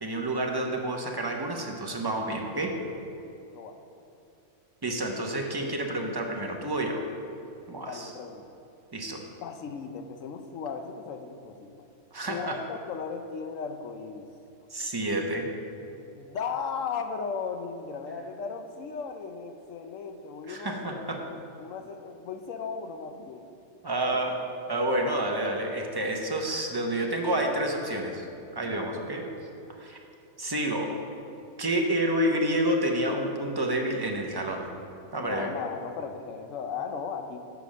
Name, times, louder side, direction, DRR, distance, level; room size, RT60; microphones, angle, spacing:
voice 1, 0.0-2.7 4.8-7.1 7.7-8.1 8.9-9.2 12.1-12.6 14.7-15.5 20.5-21.2 23.8-24.4 24.7-28.2 28.5-29.2 29.8-30.0 30.4-30.9 31.6-34.6 35.1-35.5, right 1 dB, 25° right, 1 dB, 0.6 m, -29 dB
voice 2, 7.8-8.6 9.4-11.8 12.2-14.3 16.1-23.5 24.0-24.2 28.6-28.9 35.1-37.4, left 5 dB, 90° left, 7 dB, 1.0 m, -36 dB
7.8 x 5.1 x 6.2 m, 2.7 s
omnidirectional pair, 1.3 m